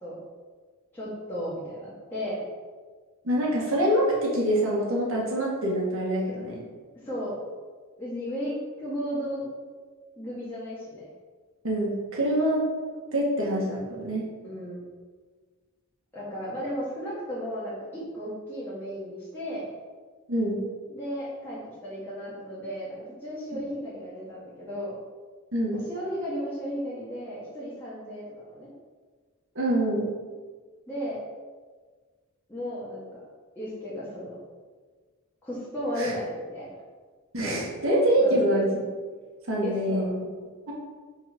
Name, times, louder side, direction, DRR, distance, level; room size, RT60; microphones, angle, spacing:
voice 1, 0.9-2.4 7.0-7.4 8.0-9.4 10.2-11.1 14.4-14.8 16.1-19.7 20.9-25.0 25.9-28.7 30.9-31.2 32.5-33.2 33.5-34.3 35.4-36.7 38.2-38.4 39.6-40.1, equal, 10° left, -10 dB, 1.8 m, -34 dB
voice 2, 3.2-6.6 11.6-12.6 13.1-14.3 20.3-20.6 25.5-25.8 29.6-30.1 36.0-36.1 37.3-38.7 39.5-40.1 40.7-40.8, right 1 dB, 65° right, -4 dB, 2.0 m, -25 dB
5.9 x 4.7 x 5.3 m, 1.5 s
head